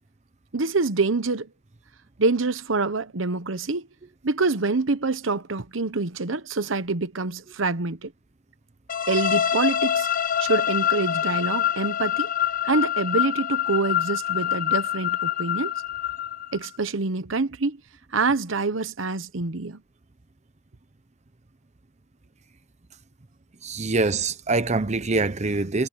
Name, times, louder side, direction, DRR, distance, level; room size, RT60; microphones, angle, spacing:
voice 1, 0.5-1.5 2.2-3.9 4.2-8.1 9.1-10.1 10.4-12.3 12.6-15.7 16.5-17.8 18.1-19.8, right 3 dB, 80° right, 1.1 m, -26 dB
sound 1, 8.9-16.7, left 10 dB, 45° left, 0.9 m, -25 dB
voice 2, 23.6-25.9, right 3 dB, 35° right, 0.8 m, -24 dB
head